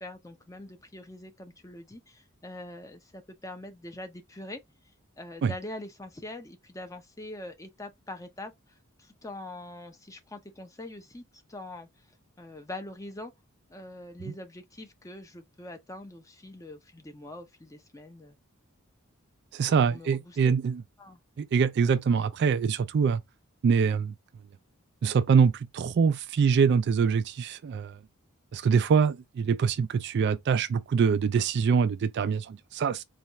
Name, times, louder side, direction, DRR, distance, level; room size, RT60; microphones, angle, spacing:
voice 1, 0.0-4.6 5.2-8.5 9.0-11.9 12.4-13.3 13.7-18.4 19.9-20.4 21.0-21.2, left 1 dB, 15° left, 0.6 m, -43 dB
voice 2, 19.5-20.8 21.4-23.2 23.6-24.1 25.0-27.9 28.5-33.0, right 6 dB, 50° right, 0.3 m, -24 dB
4.1 x 2.4 x 3.0 m
head